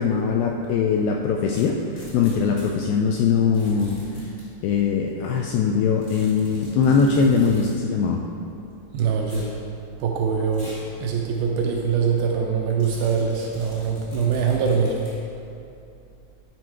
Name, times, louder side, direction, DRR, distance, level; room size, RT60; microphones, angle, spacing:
voice 1, 0.0-4.0 4.6-8.2, left 5 dB, 85° left, 1 dB, 2.1 m, -21 dB
sound 1, 1.5-2.7 3.5-4.5 6.0-7.8 9.2-9.5 10.5-10.9 11.3-11.4 12.8-15.2, equal, 55° left, 0.7 m, -41 dB
voice 2, 8.9-9.6 10.0-15.0, right 6 dB, 80° right, 0 dB, 2.2 m, -23 dB
11.0 x 4.7 x 4.6 m, 2.6 s
omnidirectional pair, 4.7 m